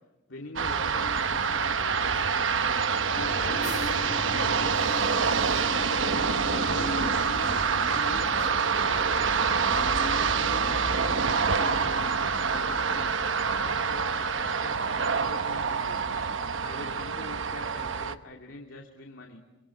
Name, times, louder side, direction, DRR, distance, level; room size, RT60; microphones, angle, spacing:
voice 1, 0.3-2.6 3.1-4.1 4.4-5.5 6.0-7.5 7.9-10.7 11.0-13.1 13.6-16.2 16.6-19.4, left 2 dB, 75° left, 1 dB, 2.8 m, -44 dB
sound 1, 0.6-18.2, right 5 dB, 75° right, 1.1 m, -26 dB
sound 2, 3.1-13.1, left 1 dB, 40° left, 1.3 m, -38 dB
26.0 x 25.0 x 8.6 m, 1.1 s
head